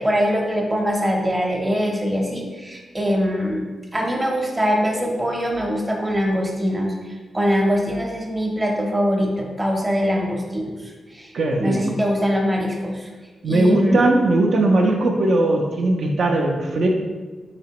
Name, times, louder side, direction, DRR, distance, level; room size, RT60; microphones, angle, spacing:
voice 1, 0.0-3.6 3.9-6.9 7.3-11.3 11.6-13.1 13.4-14.0, equal, 15° right, -1 dB, 0.7 m, -22 dB
voice 2, 11.3-11.8 13.4-16.9, right 2 dB, 70° right, 0 dB, 0.5 m, -19 dB
4.0 x 3.3 x 2.9 m, 1.3 s
wide cardioid pair, 105°, 0 cm